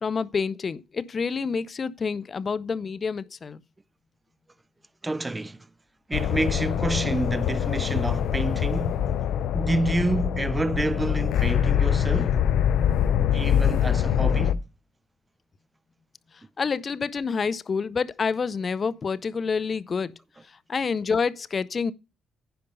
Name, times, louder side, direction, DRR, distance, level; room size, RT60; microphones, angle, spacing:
voice 1, 0.0-3.6 16.6-20.1 20.7-21.9, left 5 dB, 40° left, 0.7 m, -28 dB
voice 2, 5.0-5.7 6.1-9.0 9.5-12.4 13.3-14.6, right 2 dB, 15° right, 0.4 m, -28 dB
sound 1, 6.1-14.5, left 9 dB, 80° left, 0.6 m, -24 dB
10.5 x 5.2 x 5.4 m
cardioid pair, 90°, 0 cm